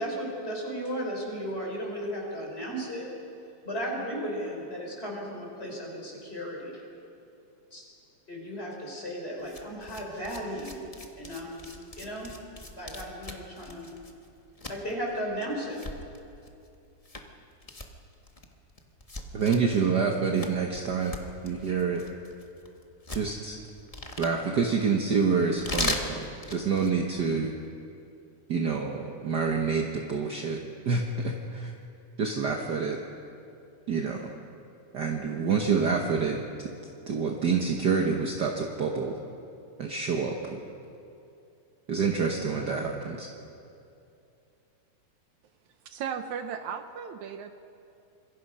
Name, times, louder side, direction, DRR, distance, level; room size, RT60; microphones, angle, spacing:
voice 1, 0.0-3.1 3.6-6.8 7.7-7.8 8.3-10.8 11.2-11.6 12.0-12.3 12.7-13.9 14.7-15.8, equal, 20° left, -1 dB, 4.7 m, -35 dB
sound 1, 9.4-27.0, left 2 dB, 50° left, 0.4 m, -40 dB
voice 2, 19.3-21.1 21.4-22.0 23.1-23.6 24.2-27.5 28.5-31.7 32.2-33.0 33.9-34.3 34.9-36.7 37.1-39.2 39.8-40.6 41.9-43.3, right 5 dB, 55° right, 1 dB, 1.2 m, -27 dB
voice 3, 45.9-47.5, right 7 dB, 75° right, 7 dB, 2.1 m, -35 dB
26.0 x 22.5 x 5.6 m, 2.6 s
omnidirectional pair, 3.5 m